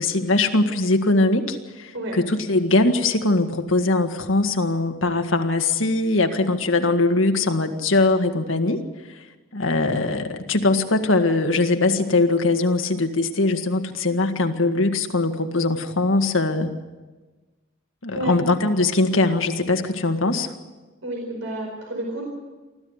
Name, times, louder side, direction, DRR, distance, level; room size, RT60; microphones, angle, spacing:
voice 1, 0.0-8.8 9.5-16.7 18.0-20.5, left 2 dB, 90° left, 6 dB, 1.8 m, -21 dB
voice 2, 21.0-22.2, right 1 dB, 90° right, 0 dB, 4.8 m, -30 dB
24.5 x 15.0 x 8.2 m, 1.2 s
head